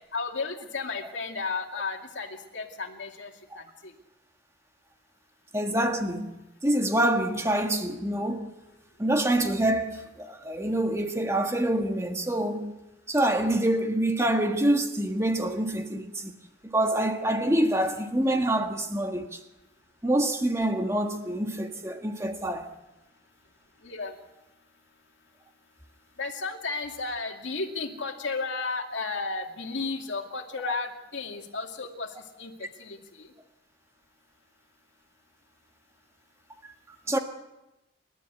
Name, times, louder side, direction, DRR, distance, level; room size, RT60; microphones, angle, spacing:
voice 1, 0.1-3.9 23.8-24.1 26.2-33.3, left 4 dB, 75° left, 2.4 m, -34 dB
voice 2, 5.5-6.3 6.6-8.5 9.0-12.7 13.1-16.4 16.6-19.4 20.0-22.7 30.6-30.7 36.9-37.2, right 1 dB, 15° right, 1.5 m, -26 dB
29.5 x 12.5 x 8.3 m
head